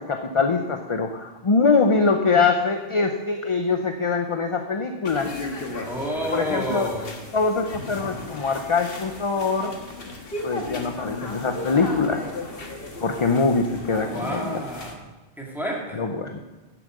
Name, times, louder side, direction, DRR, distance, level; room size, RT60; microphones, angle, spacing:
voice 1, 0.0-5.3 6.3-7.0 7.3-9.7 10.4-12.2 13.0-14.6 15.9-16.4, left 4 dB, 35° left, 5 dB, 0.7 m, -23 dB
sound 1, 5.0-14.9, left 2 dB, 60° left, 1.6 m, -36 dB
voice 2, 5.8-7.2 14.0-14.9 15.4-16.0, equal, ahead, -3 dB, 2.6 m, -30 dB
10.0 x 7.7 x 6.6 m, 1.2 s
omnidirectional pair, 1.1 m